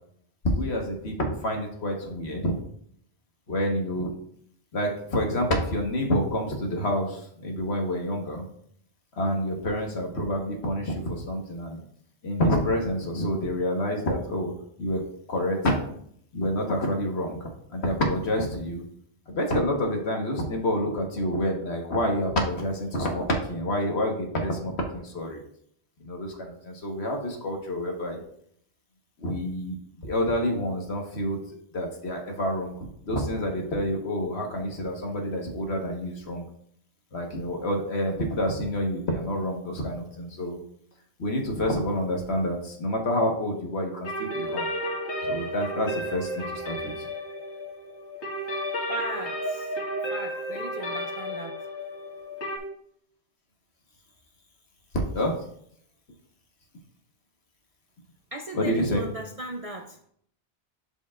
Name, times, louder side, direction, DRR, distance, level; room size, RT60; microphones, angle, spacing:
voice 1, 0.5-2.6 3.5-4.1 4.7-8.4 9.2-11.8 12.2-14.5 14.8-15.0 15.3-15.7 16.3-18.8 19.3-25.4 26.0-28.2 29.2-29.7 30.0-31.4 31.7-36.4 37.1-40.6 41.2-44.7 45.2-47.1 55.1-55.3 58.5-59.0, equal, 75° left, 1 dB, 1.7 m, -28 dB
sound 1, 44.0-52.6, equal, 90° left, 2.0 m, -32 dB
voice 2, 48.9-49.7 50.1-51.6 58.3-60.0, right 2 dB, 45° right, 4 dB, 0.5 m, -36 dB
12.0 x 5.3 x 2.5 m, 0.66 s
omnidirectional pair, 1.1 m